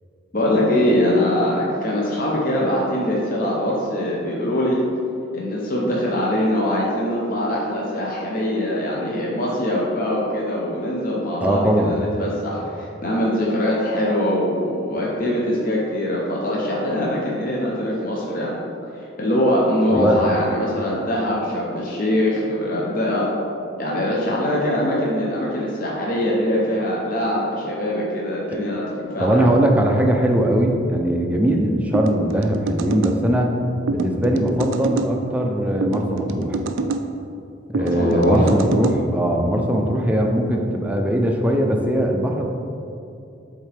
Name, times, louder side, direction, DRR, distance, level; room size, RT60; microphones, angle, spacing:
voice 1, 0.3-4.8 5.3-18.6 19.0-23.3 23.8-29.5 37.8-38.5, left 1 dB, 45° left, -5 dB, 0.7 m, -22 dB
voice 2, 11.4-11.9 19.9-20.2 29.2-33.5 33.9-36.6 37.7-42.4, equal, 5° right, 1 dB, 0.4 m, -20 dB
sound 1, 31.9-33.2 33.9-35.1 35.8-37.0 37.7-39.0, right 3 dB, 75° right, 0.4 m, -26 dB
7.5 x 3.7 x 3.4 m, 2.8 s
head